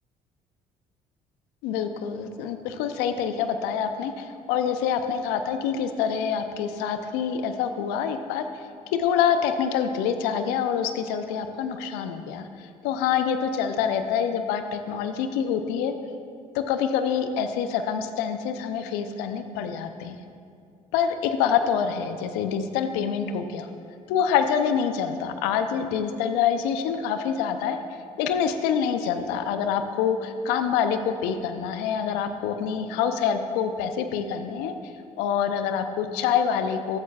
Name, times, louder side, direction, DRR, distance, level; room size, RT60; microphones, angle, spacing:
voice 1, 1.6-8.6 8.9-15.9 16.5-20.2 20.9-23.7 24.1-27.8 28.2-34.7 35.2-37.0, left 7 dB, 75° left, 8 dB, 0.6 m, -26 dB
14.0 x 8.4 x 2.4 m, 2.4 s
hypercardioid pair, 55°, 17 cm